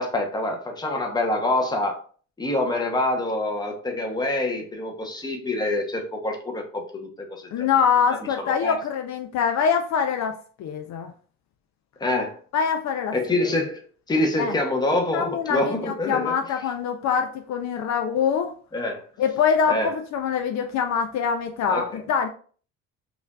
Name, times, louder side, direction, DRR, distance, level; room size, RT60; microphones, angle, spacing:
voice 1, 0.0-2.0 2.4-7.7 8.4-8.8 12.0-12.4 13.1-13.8 14.1-16.3 18.7-19.0 19.7-19.9 21.7-21.9, left 2 dB, 10° left, 0.8 m, -26 dB
voice 2, 7.5-11.1 12.5-13.5 14.4-14.6 15.1-18.5 19.2-22.3, left 7 dB, 60° left, 0.5 m, -24 dB
5.0 x 2.5 x 2.3 m
cardioid pair, 115°, 32 cm